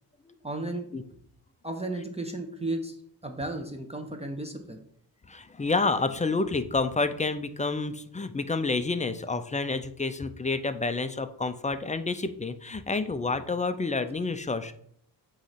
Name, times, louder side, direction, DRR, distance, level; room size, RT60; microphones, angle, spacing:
voice 1, 0.4-0.9 1.6-3.0 3.2-4.8, right 2 dB, 15° right, 4 dB, 0.9 m, -34 dB
voice 2, 5.3-14.7, left 3 dB, 15° left, 10 dB, 0.5 m, -29 dB
8.4 x 3.2 x 5.7 m, 0.65 s
cardioid pair, 95°, 43 cm